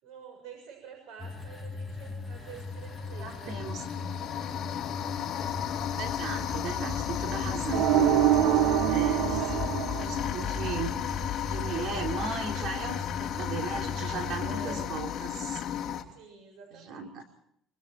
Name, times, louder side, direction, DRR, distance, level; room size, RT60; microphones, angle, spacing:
voice 1, 0.0-3.6 4.0-4.5 9.3-9.8 14.4-14.9 16.1-17.2, right 6 dB, 90° right, 3 dB, 7.0 m, -48 dB
sound 1, 1.2-14.9, left 3 dB, ahead, 2.1 m, -39 dB
sound 2, 2.0-2.1 2.6-16.0, left 10 dB, 40° left, 3.2 m, -34 dB
voice 2, 3.2-3.9 6.0-7.8 8.9-9.5 10.0-10.9 11.5-15.6 16.7-17.2, right 5 dB, 55° right, 3 dB, 3.4 m, -37 dB
sound 3, 7.7-10.7, right 13 dB, 70° right, 0.8 m, -25 dB
25.5 x 24.0 x 4.5 m, 0.74 s
cardioid pair, 155°, 0 cm